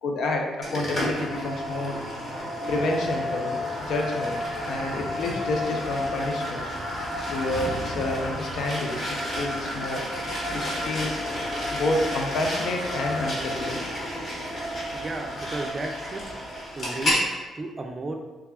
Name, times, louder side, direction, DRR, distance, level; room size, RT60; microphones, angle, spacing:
voice 1, 0.0-2.0 2.7-4.4 4.6-6.6 7.3-11.2 11.7-13.8, left 2 dB, 70° left, 1 dB, 0.5 m, -29 dB
sound 1, 0.6-17.2, left 1 dB, 45° left, 1.3 m, -31 dB
sound 2, 2.8-15.7, equal, 15° left, 1.0 m, -42 dB
voice 2, 14.9-16.3 16.7-17.2 17.6-18.1, right 2 dB, 35° right, 3 dB, 0.4 m, -33 dB
3.3 x 2.2 x 3.3 m, 1.2 s
cardioid pair, 90°, 0 cm